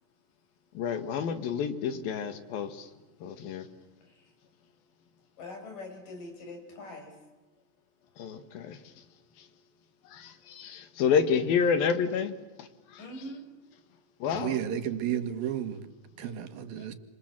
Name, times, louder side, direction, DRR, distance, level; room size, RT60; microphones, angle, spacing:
voice 1, 0.8-2.9 3.2-3.7 8.2-9.0 9.4-9.5 10.1-13.0 14.2-14.6 16.8-16.9, left 6 dB, 85° left, 10 dB, 3.6 m, -29 dB
voice 2, 4.0-4.3 5.4-7.2 13.0-13.5, left 2 dB, 65° left, 4 dB, 7.5 m, -43 dB
voice 3, 14.4-16.9, right 10 dB, 85° right, 10 dB, 3.5 m, -33 dB
29.0 x 27.0 x 7.5 m, 1.2 s
omnidirectional pair, 4.0 m